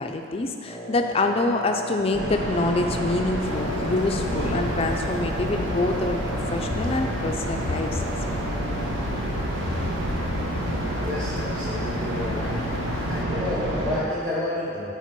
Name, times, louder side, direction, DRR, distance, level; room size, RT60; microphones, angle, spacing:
voice 1, 0.0-6.2 6.5-8.1, left 2 dB, 30° left, 4 dB, 0.4 m, -26 dB
Wind instrument woodwind instrument, 0.6-9.2, right 1 dB, 5° right, 0.9 m, -39 dB
sound 1, 2.1-14.0, right 1 dB, 75° right, 0.9 m, -29 dB
sound 2, 3.4-13.3, left 4 dB, 90° left, 0.4 m, -35 dB
voice 2, 11.0-12.5 13.0-14.9, left 1 dB, 40° right, -10 dB, 1.6 m, -30 dB
7.3 x 3.4 x 5.9 m, 2.6 s
head